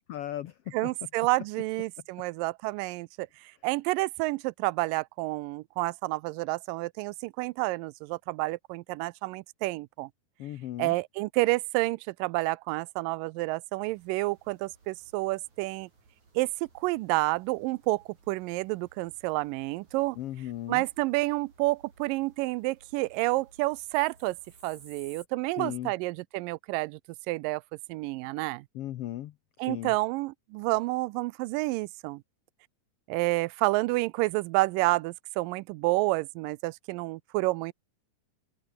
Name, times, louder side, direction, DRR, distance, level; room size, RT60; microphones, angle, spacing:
voice 1, 0.0-0.9 10.4-10.9 20.2-20.8 25.6-25.9 28.7-29.9, left 13 dB, 85° left, 1.3 m, -37 dB
voice 2, 0.7-3.3 3.6-10.1 10.8-15.9 16.4-16.5 16.8-20.2 20.7-24.4 24.6-27.0 27.3-27.6 27.9-28.7 29.6-32.2 33.1-37.7, right 21 dB, 85° right, 2.2 m, -29 dB
sound 1, 13.8-25.3, right 4 dB, 60° right, 8.3 m, -59 dB
open air
omnidirectional pair, 3.9 m